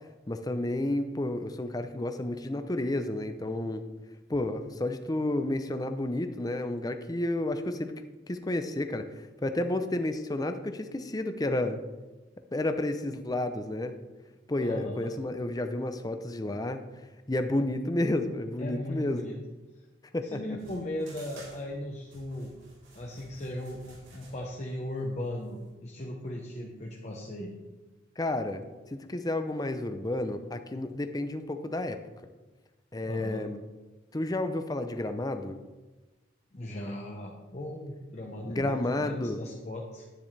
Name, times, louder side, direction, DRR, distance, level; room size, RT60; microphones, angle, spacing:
voice 1, 0.3-3.8 4.3-7.9 8.3-11.8 12.5-14.0 14.5-16.8 17.3-19.4 20.1-20.4 28.2-28.6 28.9-32.0 32.9-33.6 34.1-35.6 38.4-39.4, left 1 dB, 20° left, 8 dB, 0.5 m, -31 dB
voice 2, 14.6-15.1 18.6-19.4 20.2-22.5 22.9-27.5 33.0-33.4 36.5-40.1, left 1 dB, 35° left, -1 dB, 0.9 m, -37 dB
sound 1, 20.6-25.7, right 2 dB, 80° right, 3.6 m, -54 dB
10.5 x 9.7 x 3.3 m, 1.2 s
head